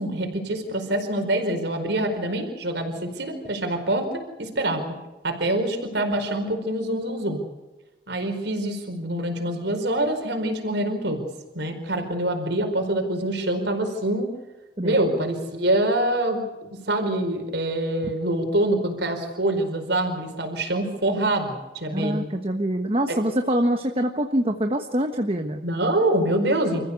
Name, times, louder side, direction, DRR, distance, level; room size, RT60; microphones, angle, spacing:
voice 1, 0.0-4.8 5.2-7.4 8.1-11.3 11.5-14.3 14.8-22.3 23.1-23.2 25.6-26.8, right 1 dB, 70° right, 4 dB, 4.8 m, -25 dB
voice 2, 21.9-25.6, right 1 dB, 30° right, 5 dB, 1.3 m, -24 dB
29.5 x 15.0 x 8.3 m, 1.1 s
head